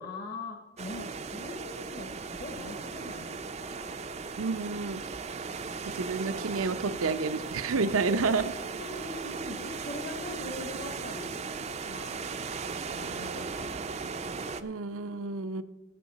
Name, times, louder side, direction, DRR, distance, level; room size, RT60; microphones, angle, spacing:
voice 1, 0.0-2.1 2.4-4.1 5.3-5.6 8.7-11.5 11.8-12.3 12.9-13.9, left 2 dB, 45° left, 4 dB, 1.1 m, -42 dB
sound 1, 0.8-14.6, right 4 dB, 30° right, 0.5 m, -37 dB
voice 2, 4.4-5.0 5.9-8.5 14.6-15.6, right 4 dB, 75° right, 11 dB, 0.7 m, -30 dB
15.5 x 7.4 x 4.1 m, 1.2 s
head